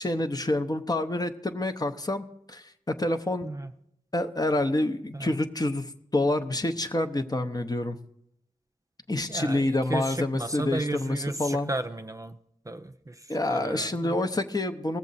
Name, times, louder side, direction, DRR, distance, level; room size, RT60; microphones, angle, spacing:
voice 1, 0.0-3.5 4.1-8.0 9.1-11.7 13.3-15.0, left 1 dB, 30° left, 8 dB, 0.7 m, -28 dB
voice 2, 9.3-12.4 12.7-14.2, right 2 dB, 25° right, 7 dB, 0.5 m, -34 dB
19.0 x 7.3 x 4.1 m, 0.77 s
wide cardioid pair, 70°, 14 cm